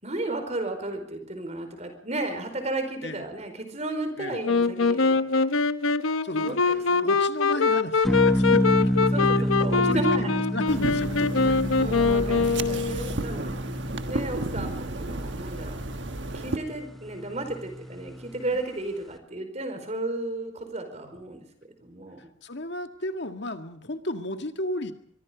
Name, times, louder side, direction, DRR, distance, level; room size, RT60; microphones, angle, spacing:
voice 1, 0.0-5.5 6.3-7.1 9.1-10.4 11.8-13.5 14.1-15.8 16.3-21.4 21.8-22.3, right 2 dB, 35° right, 7 dB, 4.8 m, -33 dB
Wind instrument woodwind instrument, 4.4-13.2, left 4 dB, 85° left, 1.0 m, -23 dB
voice 2, 6.0-9.5 9.8-11.7 21.0-21.1 22.4-24.9, left 1 dB, 55° left, 7 dB, 1.9 m, -34 dB
sound 1, 8.0-18.6, equal, ahead, 1.2 m, -29 dB
sound 2, 10.7-16.6, right 2 dB, 60° right, 1.4 m, -33 dB
24.0 x 22.5 x 5.2 m, 0.66 s
head